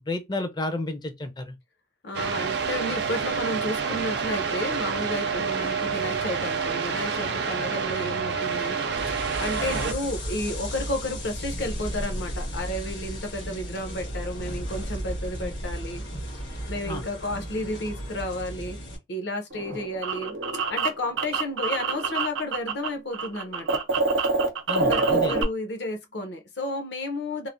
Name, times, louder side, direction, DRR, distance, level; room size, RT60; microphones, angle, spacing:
voice 1, 0.0-1.6 9.7-9.9 16.9-17.1 19.7-19.8 24.7-25.3, left 2 dB, 20° left, 0.4 m, -31 dB
voice 2, 2.0-8.8 9.1-16.0 16.7-18.8 19.1-20.4 20.7-23.8 24.7-27.5, left 1 dB, 65° left, 0.7 m, -32 dB
sound 1, 2.1-9.9, right 5 dB, 60° right, 0.4 m, -28 dB
sound 2, 9.0-19.0, equal, 80° left, 1.4 m, -34 dB
sound 3, 19.5-22.9 23.1-25.4, right 4 dB, 90° right, 0.7 m, -26 dB
3.1 x 2.1 x 2.5 m
head